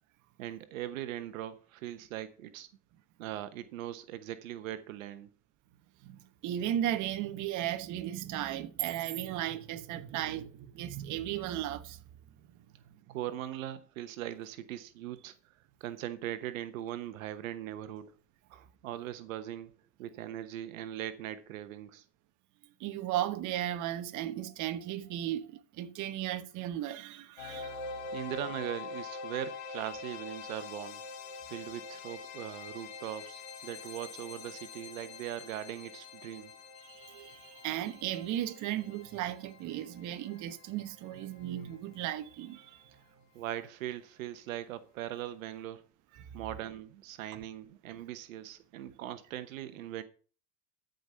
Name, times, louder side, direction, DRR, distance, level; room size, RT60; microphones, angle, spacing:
voice 1, 0.4-2.7 3.2-5.3 13.1-15.3 15.8-18.1 18.5-19.7 20.0-22.0 28.1-31.1 31.5-36.5 43.3-45.8 46.3-50.0, right 12 dB, 85° right, 1.0 m, -40 dB
sound 1, 5.3-19.3, right 16 dB, 70° right, 1.3 m, -51 dB
voice 2, 6.0-12.0 13.1-13.2 22.8-27.8 36.8-42.8 46.2-46.3, right 12 dB, 50° right, 1.1 m, -36 dB
sound 2, 27.4-42.3, left 4 dB, 70° left, 2.4 m, -45 dB
13.5 x 5.3 x 5.6 m
supercardioid pair, 110°, 39 cm